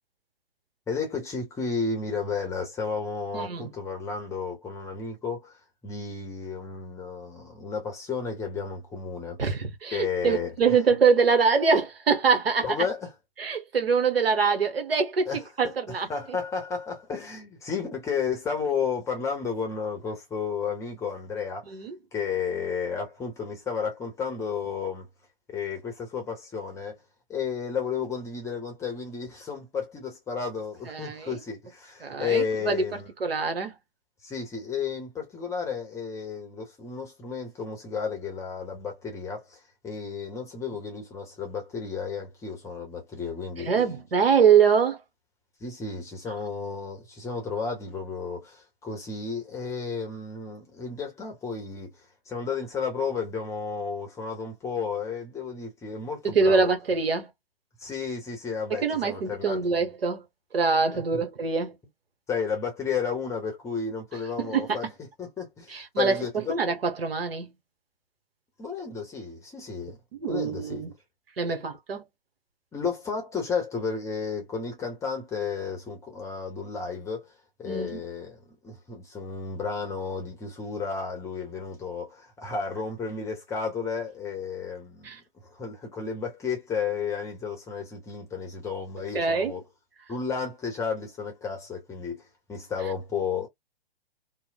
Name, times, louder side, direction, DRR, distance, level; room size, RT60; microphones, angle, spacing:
voice 1, 0.9-5.6 5.8-9.4 9.9-10.8 12.6-13.1 15.3-15.7 16.1-21.7 22.1-25.1 25.5-27.0 27.3-33.1 34.2-43.7 45.6-51.9 52.3-56.7 57.8-59.6 62.3-64.9 65.2-66.6 68.6-70.0 70.3-70.8 71.4-71.6 72.7-77.3 77.6-85.1 85.5-89.6 90.1-92.2 92.5-93.5, left 5 dB, 10° left, 0.7 m, -32 dB
voice 2, 3.3-3.7 9.4-12.7 13.4-16.4 21.7-21.9 30.9-31.4 32.0-32.8 33.2-33.7 43.6-45.0 56.2-57.3 58.7-60.2 60.5-61.7 64.5-64.7 65.7-67.5 70.1-70.9 71.4-72.0 77.6-78.0 85.0-85.2 89.1-89.5, right 5 dB, 75° right, 1.0 m, -24 dB
3.0 x 2.0 x 2.3 m
figure-of-eight pair, 120°, 30 cm